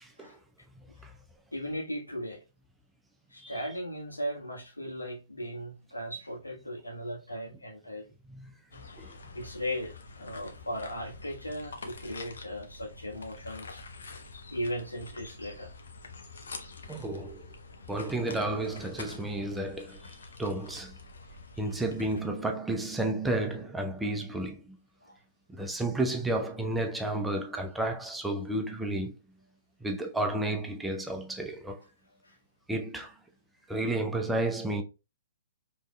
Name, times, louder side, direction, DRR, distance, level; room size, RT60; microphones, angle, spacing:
voice 1, 1.5-2.4 3.3-8.0 9.3-13.8 14.5-15.7 16.2-16.3 25.0-25.2 32.2-32.3, equal, 80° left, 1.4 m, -37 dB
sound 1, 8.7-22.2, left 3 dB, 60° left, 0.8 m, -46 dB
voice 2, 16.9-17.5 17.9-21.0 21.6-24.8 25.5-29.1 29.8-31.8 32.7-33.1 33.7-34.8, right 2 dB, 5° right, 0.5 m, -32 dB
5.1 x 3.1 x 2.2 m
figure-of-eight pair, 120°, 0 cm